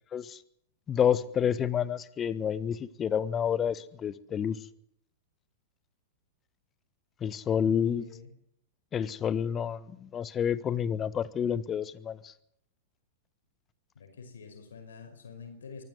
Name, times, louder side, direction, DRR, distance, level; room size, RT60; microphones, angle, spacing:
voice 1, 0.9-4.6 7.2-8.0 8.9-12.3, left 8 dB, 25° left, 1.4 m, -29 dB
voice 2, 7.6-8.3 14.0-15.8, left 5 dB, 80° left, 5.3 m, -47 dB
24.0 x 15.5 x 8.0 m
hypercardioid pair, 105°, 0 cm